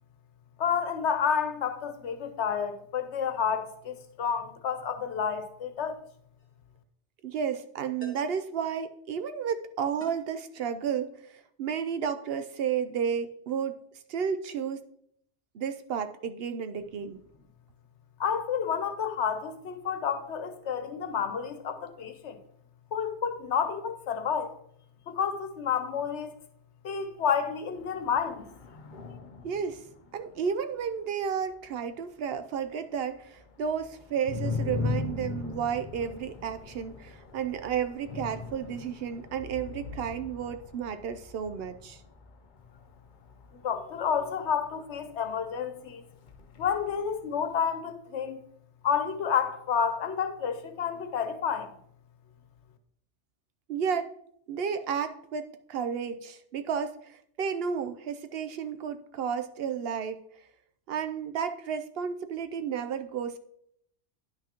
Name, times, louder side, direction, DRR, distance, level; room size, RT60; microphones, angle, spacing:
voice 1, 0.6-6.0 18.2-22.4 22.9-24.5 25.1-26.3 26.8-28.4 43.6-46.0 46.6-48.4 48.8-51.7, left 7 dB, 80° left, 1.1 m, -30 dB
sound 1, 6.4-6.6 8.0-8.4 10.0-10.4, equal, 10° right, 1.5 m, -47 dB
voice 2, 7.2-13.8 14.1-14.8 15.5-17.2 29.4-29.8 30.1-42.0 53.7-54.1 54.5-60.2 60.9-63.4, right 7 dB, 65° right, 0.7 m, -32 dB
sound 2, 27.8-32.7 33.0-45.7 46.1-47.5, left 4 dB, 50° left, 0.7 m, -40 dB
9.9 x 5.9 x 2.9 m
omnidirectional pair, 1.2 m